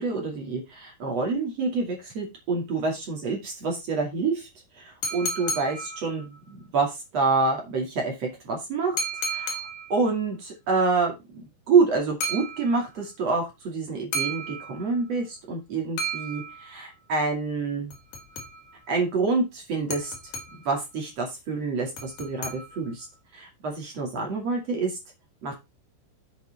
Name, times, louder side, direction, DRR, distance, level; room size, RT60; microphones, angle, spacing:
voice 1, 0.0-4.5 4.8-6.4 6.7-9.0 9.3-9.6 9.9-11.1 11.7-17.9 18.9-20.1 20.6-23.1 23.3-24.9 25.4-25.5, right 4 dB, 40° right, 0 dB, 2.7 m, -27 dB
sound 1, 5.0-6.5 9.0-10.1 12.2-13.1 14.1-15.2 16.0-17.0 17.9-18.9 19.9-20.8 22.0-23.1, right 1 dB, 55° left, 3.3 m, -34 dB
8.1 x 6.4 x 4.1 m, 0.23 s
omnidirectional pair, 5.7 m